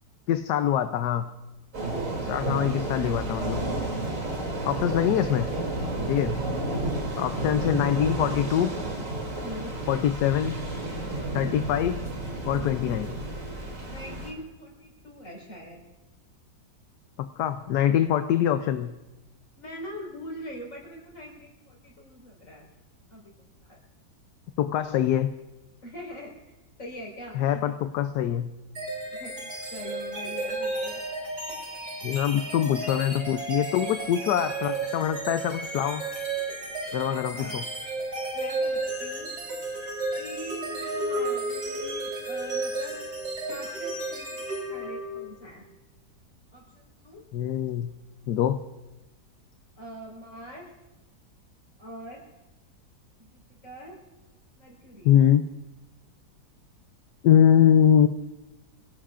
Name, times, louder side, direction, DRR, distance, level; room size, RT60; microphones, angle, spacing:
voice 1, 0.3-1.3 2.2-3.6 4.6-5.5 6.1-6.3 7.2-8.7 9.9-10.6 11.3-11.9 12.4-13.1 17.4-18.9 24.6-25.3 27.3-28.5 32.0-36.0 36.9-37.6 47.3-47.9 48.3-48.6 55.0-55.4 57.2-58.1, left 10 dB, 75° left, 8 dB, 1.2 m, -23 dB
sound 1, 1.7-14.3, right 2 dB, 50° right, 3.2 m, -31 dB
voice 2, 9.4-9.8 11.2-11.6 13.9-15.8 19.6-22.6 23.1-23.3 23.6-23.8 25.8-26.3 26.8-27.6 29.1-31.0 37.1-37.6 38.3-39.3 40.1-43.0 43.5-45.6 46.5-47.2 49.8-50.7 51.8-52.2 53.2-54.0 54.6-55.1, equal, 50° left, -2 dB, 5.2 m, -43 dB
sound 2, 28.8-45.4, right 2 dB, 75° right, 4.5 m, -33 dB
26.0 x 17.0 x 2.5 m, 1.1 s
omnidirectional pair, 1.8 m